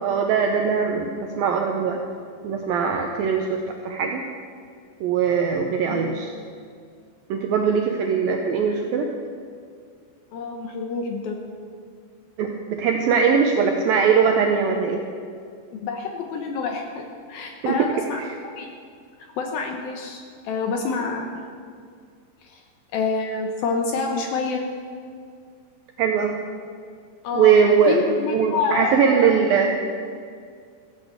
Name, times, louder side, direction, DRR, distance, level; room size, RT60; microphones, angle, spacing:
voice 1, 0.0-2.0 2.4-4.2 5.0-6.3 7.3-9.1 12.4-15.0 17.6-17.7 26.0-26.4 27.3-28.0 28.3-29.7, right 6 dB, 80° right, 3 dB, 2.1 m, -21 dB
voice 2, 5.9-6.3 10.3-11.4 15.7-18.7 19.4-21.3 22.4-22.6 22.9-24.6 27.2-27.6 27.9-29.3, left 4 dB, 75° left, 3 dB, 2.4 m, -28 dB
15.5 x 8.5 x 8.0 m, 2.2 s
omnidirectional pair, 5.1 m